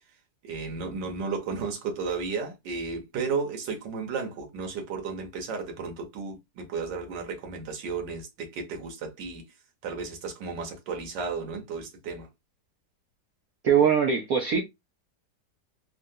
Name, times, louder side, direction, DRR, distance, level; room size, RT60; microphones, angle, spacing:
voice 1, 0.4-9.5 9.8-12.3, right 4 dB, 90° right, 1.6 m, -33 dB
voice 2, 13.6-14.6, right 7 dB, 70° right, 0.9 m, -21 dB
3.8 x 2.2 x 2.6 m
omnidirectional pair, 1.9 m